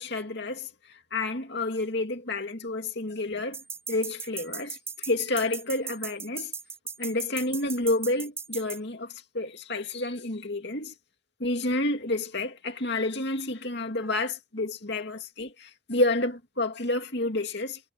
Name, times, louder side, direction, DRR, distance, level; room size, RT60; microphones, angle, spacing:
voice 1, 0.0-3.6 3.9-6.5 7.0-10.9 11.4-17.8, left 2 dB, 55° left, 2.6 m, -30 dB
sound 1, 3.5-8.8, right 5 dB, 10° right, 7.5 m, -37 dB
head